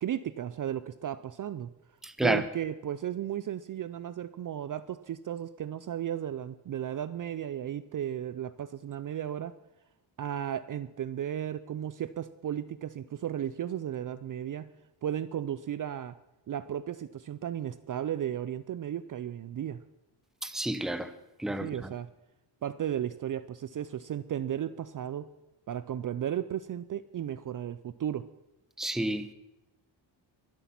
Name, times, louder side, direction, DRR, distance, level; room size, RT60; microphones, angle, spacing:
voice 1, 0.0-1.7 2.2-9.6 10.2-14.7 15.0-16.1 16.5-19.8 21.6-22.1 22.6-25.3 25.7-28.2, right 10 dB, 45° right, 0.5 m, -34 dB
voice 2, 2.0-2.4 20.4-21.1 21.4-21.9 28.8-29.3, right 1 dB, ahead, 0.7 m, -30 dB
22.5 x 8.3 x 5.9 m
wide cardioid pair, 145°, 47 cm